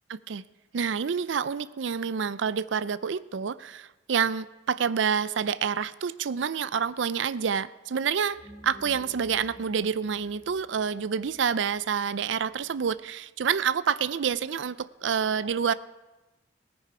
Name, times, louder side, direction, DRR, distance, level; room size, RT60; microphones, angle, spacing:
voice 1, 0.1-0.4 0.7-8.4 8.6-15.7, right 6 dB, 75° right, 16 dB, 0.5 m, -28 dB
sound 1, 8.2-13.0, right 1 dB, 35° left, 3.3 m, -52 dB
18.5 x 9.1 x 4.9 m, 1.1 s
head